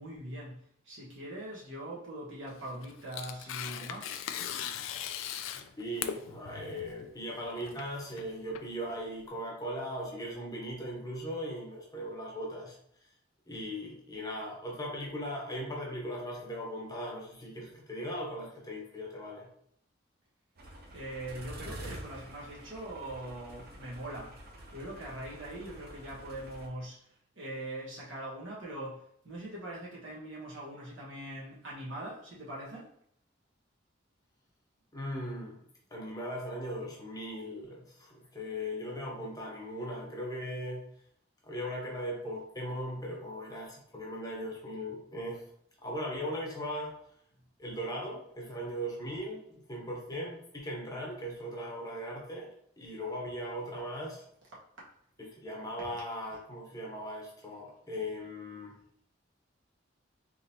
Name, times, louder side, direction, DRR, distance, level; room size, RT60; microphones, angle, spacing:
voice 1, 0.0-4.2 20.9-24.4 24.7-27.1 27.3-32.9 54.8-54.9, right 1 dB, 75° right, 1.3 m, -42 dB
Tearing, 2.5-9.3, left 9 dB, 85° left, 0.3 m, -40 dB
voice 2, 5.6-12.8 13.5-19.5 34.9-35.6 35.9-40.8 41.4-45.4 45.8-46.9 47.6-52.5 52.8-54.2 55.2-58.7, equal, 20° left, 0.7 m, -38 dB
sound 1, 20.6-26.7, right 1 dB, 50° right, 0.7 m, -47 dB
3.8 x 3.0 x 2.8 m
head